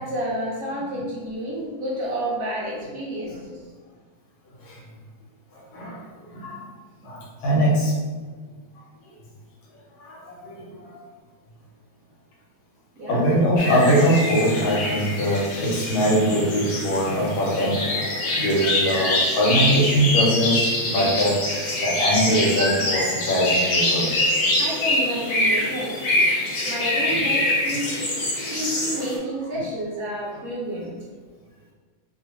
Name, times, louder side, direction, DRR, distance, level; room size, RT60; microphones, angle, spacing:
voice 1, 0.0-3.6 13.0-13.2 24.6-26.2 26.6-27.9 28.5-30.9, equal, 70° right, -6 dB, 0.8 m, -30 dB
voice 2, 7.0-7.9 10.0-10.7 13.1-17.8 18.4-21.4 21.8-24.2, equal, 75° left, -4 dB, 1.7 m, -22 dB
sound 1, 13.6-29.2, left 1 dB, 60° left, 1.1 m, -24 dB
3.4 x 2.3 x 2.9 m, 1.5 s
omnidirectional pair, 2.2 m